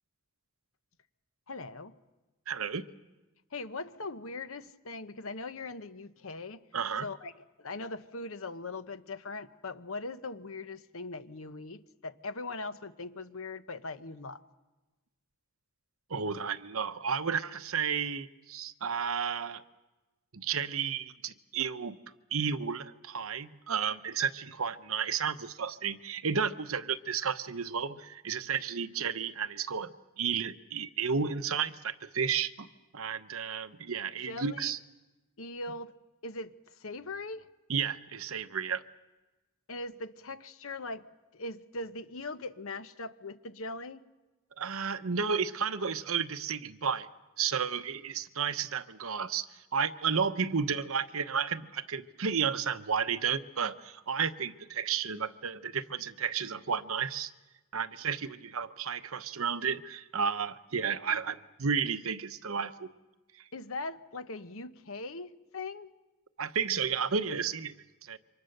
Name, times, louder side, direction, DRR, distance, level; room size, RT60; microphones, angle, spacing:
voice 1, 1.5-1.9 3.5-6.6 7.0-14.4 34.2-34.7 35.4-35.9 36.2-36.5 36.8-37.5 39.7-41.0 41.3-44.0 63.5-65.9, left 3 dB, 65° left, 12 dB, 1.0 m, -40 dB
voice 2, 2.5-2.8 6.7-7.1 16.1-19.6 20.3-22.0 22.3-32.7 32.9-34.8 37.7-38.8 44.6-47.1 47.4-57.3 57.7-62.9 66.4-68.2, right 6 dB, 70° right, 11 dB, 0.9 m, -32 dB
28.0 x 25.0 x 6.6 m, 1.1 s
head